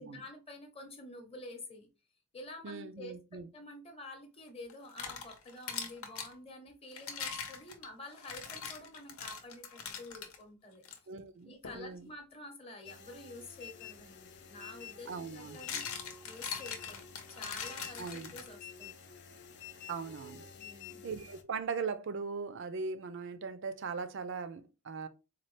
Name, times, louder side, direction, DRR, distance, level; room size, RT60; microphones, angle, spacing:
voice 1, 0.0-1.9 2.3-10.8 11.4-19.0 20.6-21.1, left 2 dB, 25° left, 0.8 m, -49 dB
voice 2, 2.6-3.5 11.1-12.1 15.1-15.6 18.0-18.3 19.9-20.4 21.0-25.1, right 5 dB, 55° right, 0.4 m, -39 dB
sound 1, 4.7-6.3 6.9-10.4 10.8-11.0 11.6-11.9 14.0-14.1 15.3-18.8, left 6 dB, 75° left, 0.8 m, -42 dB
sound 2, 12.8-21.4, left 7 dB, 50° left, 0.5 m, -50 dB
4.3 x 2.3 x 3.2 m
head